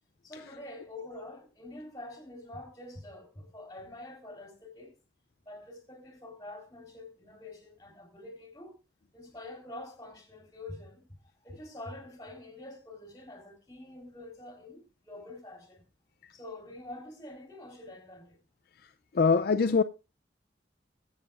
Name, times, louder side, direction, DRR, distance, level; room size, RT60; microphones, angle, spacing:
voice 1, 0.2-4.9 5.5-8.8 9.1-11.0 11.4-15.9 16.3-18.4, left 2 dB, 20° left, 3.9 m, -46 dB
voice 2, 19.1-19.8, left 5 dB, 60° left, 0.5 m, -23 dB
21.5 x 8.2 x 2.5 m
head